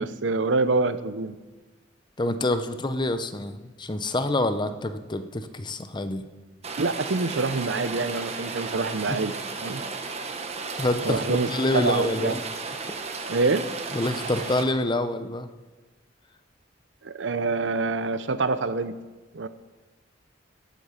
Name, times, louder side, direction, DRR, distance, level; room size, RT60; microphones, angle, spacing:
voice 1, 0.0-1.4 6.8-9.3 9.6-9.8 11.0-11.5 11.8-12.3 13.3-13.6 17.0-18.9 19.3-19.5, right 3 dB, 70° right, 13 dB, 0.7 m, -26 dB
voice 2, 2.2-6.2 9.1-9.2 10.8-12.4 13.9-15.5, left 1 dB, 25° left, 10 dB, 0.7 m, -27 dB
Rain, 6.6-14.6, right 4 dB, 35° right, 1.1 m, -34 dB
16.5 x 8.4 x 5.8 m, 1.3 s
head